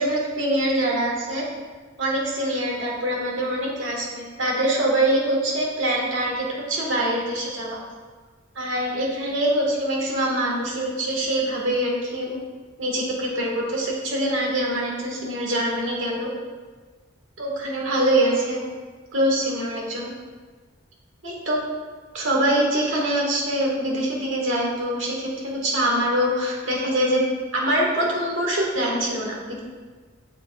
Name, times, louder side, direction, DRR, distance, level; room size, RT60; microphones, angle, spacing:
voice 1, 0.0-1.4 2.0-7.8 8.6-12.4 12.8-16.3 17.4-18.6 19.1-20.1 21.2-21.6 22.1-27.2 27.5-29.6, right 1 dB, 70° right, -2 dB, 1.8 m, -24 dB
8.1 x 6.9 x 2.5 m, 1.4 s
head